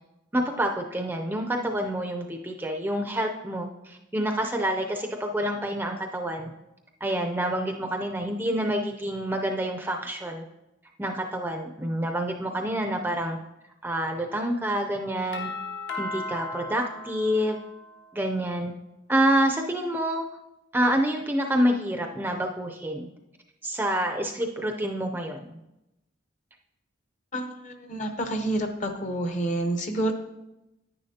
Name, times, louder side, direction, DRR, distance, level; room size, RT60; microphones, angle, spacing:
voice 1, 0.3-6.5 7.0-10.4 11.0-13.4 13.8-15.5 16.0-17.6 18.1-18.7 19.1-20.3 20.7-23.1 23.6-25.6, right 1 dB, 10° right, 3 dB, 0.5 m, -27 dB
Doorbell, 15.3-18.1, left 2 dB, 65° left, 1.2 m, -36 dB
voice 2, 27.3-30.1, right 1 dB, 40° left, 6 dB, 0.8 m, -28 dB
9.8 x 9.8 x 2.8 m, 0.93 s
head